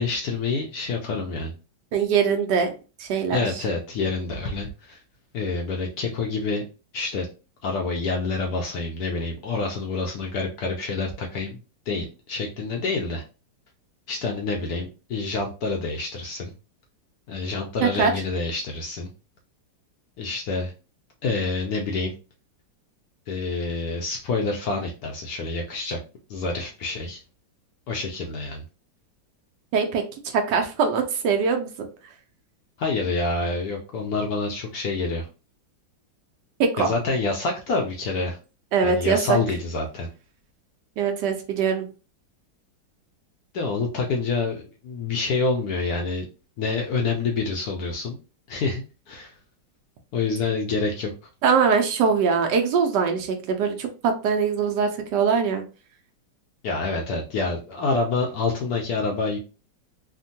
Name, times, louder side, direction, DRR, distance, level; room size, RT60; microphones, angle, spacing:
voice 1, 0.0-1.5 3.3-5.0 5.3-6.6 6.9-7.3 7.6-11.6 11.9-13.2 14.1-16.5 17.3-19.1 20.2-20.7 21.2-22.1 23.3-26.0 26.3-27.2 27.9-28.6 32.8-35.3 36.8-38.4 38.8-40.1 43.5-46.2 46.6-48.2 48.5-49.4 50.1-51.1 56.6-59.4, left 3 dB, 75° left, 1 dB, 0.9 m, -27 dB
voice 2, 1.9-2.7 3.0-3.6 17.8-18.1 29.7-31.9 36.6-36.9 38.7-39.4 41.0-41.9 51.4-55.6, right 6 dB, 75° right, 4 dB, 1.1 m, -22 dB
3.5 x 2.1 x 2.6 m, 0.33 s
omnidirectional pair, 2.0 m